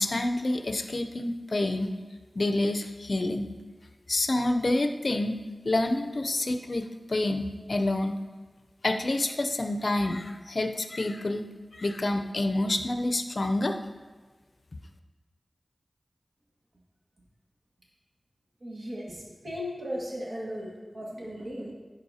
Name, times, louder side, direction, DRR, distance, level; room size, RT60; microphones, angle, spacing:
voice 1, 0.0-1.9 2.3-3.4 4.1-5.4 5.6-8.2 8.8-11.5 11.7-13.8, left 2 dB, 60° left, 7 dB, 0.5 m, -28 dB
voice 2, 18.6-21.7, equal, 60° right, -3 dB, 1.8 m, -36 dB
11.0 x 5.3 x 2.8 m, 1.4 s
wide cardioid pair, 45°, 0 cm